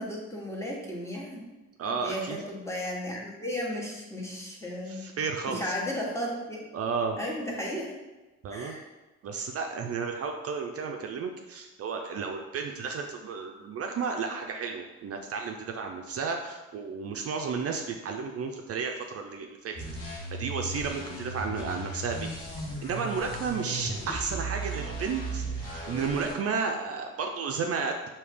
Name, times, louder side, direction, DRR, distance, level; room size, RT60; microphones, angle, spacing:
voice 1, 0.0-1.4 1.9-5.1 5.5-6.6 7.2-7.9 8.5-8.8, left 1 dB, 10° left, -3 dB, 1.1 m, -34 dB
voice 2, 1.8-2.4 4.9-5.7 6.7-7.2 8.4-8.7 9.2-28.1, right 5 dB, 50° right, 3 dB, 0.4 m, -33 dB
sound 1, 19.7-26.3, right 2 dB, 90° left, 1.2 m, -36 dB
4.7 x 2.8 x 3.4 m, 1.1 s
cardioid pair, 90°, 30 cm